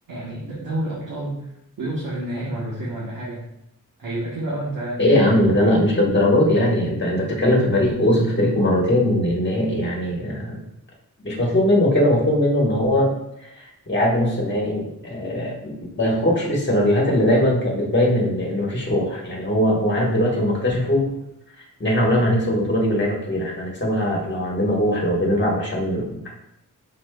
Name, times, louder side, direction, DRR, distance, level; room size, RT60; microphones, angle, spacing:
voice 1, 0.1-1.5 1.8-3.4 4.0-5.9, right 1 dB, 85° right, -7 dB, 1.2 m, -29 dB
voice 2, 5.0-10.6 11.2-13.1 13.4-21.1 21.8-26.3, left 1 dB, 35° left, -2 dB, 1.3 m, -20 dB
5.1 x 4.2 x 2.2 m, 0.81 s
wide cardioid pair, 115°, 33 cm